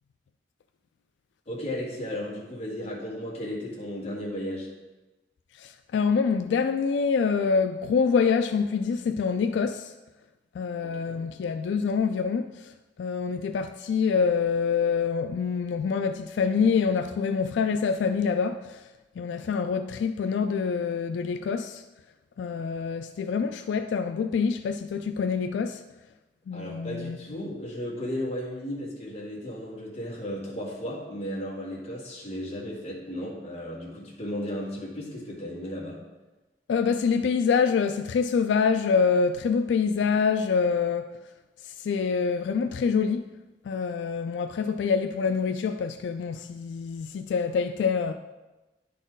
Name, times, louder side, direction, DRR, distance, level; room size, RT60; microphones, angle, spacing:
voice 1, 1.5-4.7 10.8-11.2 26.5-36.0, equal, 35° left, 1.9 m, -35 dB
voice 2, 5.6-9.9 10.6-12.7 13.0-18.8 19.2-21.8 22.4-25.8 26.5-27.2 36.7-41.1 41.6-43.2 43.7-48.1, left 5 dB, 85° left, 0.3 m, -26 dB
9.9 x 4.2 x 3.8 m
head